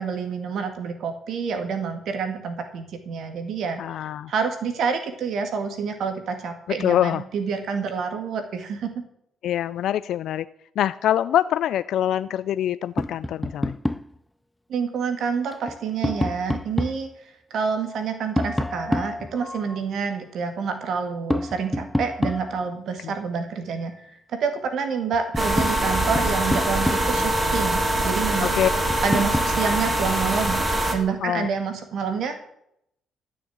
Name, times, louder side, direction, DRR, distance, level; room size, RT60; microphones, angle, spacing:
voice 1, 0.0-3.8 4.3-8.9 14.7-17.1 17.5-23.9 24.4-28.5 29.0-30.6 30.9-32.5, right 6 dB, 70° right, 7 dB, 2.0 m, -28 dB
voice 2, 3.8-4.3 6.8-7.2 9.4-10.5 10.8-13.8 28.5-28.7 31.2-31.5, left 11 dB, 75° left, 14 dB, 0.4 m, -24 dB
Tap, 13.0-14.2 15.5-17.1 18.4-19.8 21.3-22.8 24.7-24.8 25.1-27.3 28.9-29.6, left 1 dB, 5° left, 0.4 m, -28 dB
sound 1, 25.4-31.0, right 1 dB, 25° right, 2.5 m, -23 dB
14.0 x 6.5 x 8.6 m, 0.75 s
cardioid pair, 95°, 0 cm